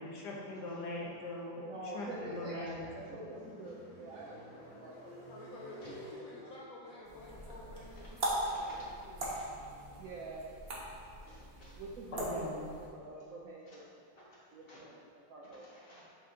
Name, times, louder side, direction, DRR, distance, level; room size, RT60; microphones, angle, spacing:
voice 1, 0.0-1.7 1.9-2.8 12.1-12.6, left 2 dB, 65° left, -3 dB, 1.4 m, -41 dB
voice 2, 1.6-2.7 3.1-4.4 4.7-5.2 6.4-6.5 10.0-10.5 11.8-13.8 14.5-14.7 15.3-15.7, right 2 dB, 70° right, -4 dB, 0.8 m, -45 dB
sound 1, 1.9-12.1, equal, 10° left, 1.3 m, -54 dB
voice 3, 5.3-8.8 9.0-9.7, left 2 dB, 80° left, -3 dB, 0.7 m, -51 dB
sound 2, 7.0-12.9, right 1 dB, 40° right, 1.0 m, -40 dB
voice 4, 7.8-8.9 9.2-9.5 11.2-11.7 13.6-13.8 14.1-14.4 14.7-14.8 15.4-16.1, equal, 30° left, -7 dB, 1.4 m, -57 dB
7.5 x 4.3 x 3.6 m, 2.2 s
omnidirectional pair, 2.2 m